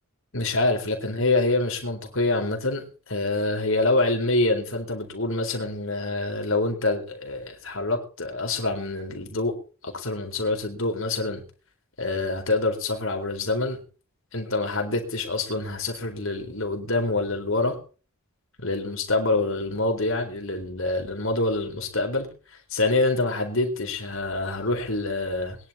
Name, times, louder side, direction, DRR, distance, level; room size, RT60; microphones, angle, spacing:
voice 1, 0.3-9.6 9.8-11.4 12.0-13.8 14.3-17.8 18.6-22.3 22.7-25.6, left 2 dB, 65° left, 3 dB, 4.2 m, -26 dB
21.5 x 11.0 x 4.4 m, 0.37 s
head